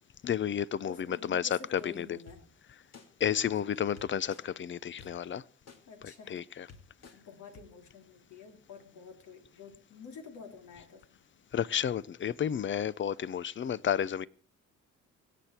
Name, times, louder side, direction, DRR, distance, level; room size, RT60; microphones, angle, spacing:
voice 1, 0.2-2.2 3.2-5.4 6.0-6.7 11.5-14.3, left 9 dB, 40° left, 0.7 m, -31 dB
voice 2, 0.9-2.5 5.9-6.6 7.1-11.2, left 5 dB, 75° left, 3.0 m, -50 dB
sound 1, 2.3-2.4 2.9-3.1 4.0-4.4 5.0-5.1 5.7-5.8 6.4-6.5 6.7-7.2 7.5-7.6, left 5 dB, 55° left, 2.4 m, -51 dB
24.5 x 8.3 x 4.4 m
cardioid pair, 90°, 30 cm